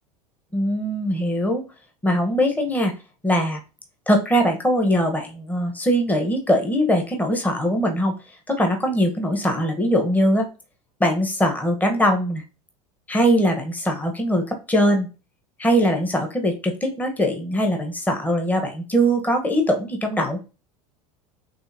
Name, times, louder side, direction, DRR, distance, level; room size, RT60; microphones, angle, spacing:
voice 1, 0.5-1.6 2.0-2.9 3.2-3.6 4.1-8.1 8.5-10.5 11.0-12.4 13.1-15.1 15.6-20.4, equal, 10° left, 3 dB, 1.3 m, -21 dB
5.5 x 3.2 x 2.8 m, 0.30 s
hypercardioid pair, 85°, 19 cm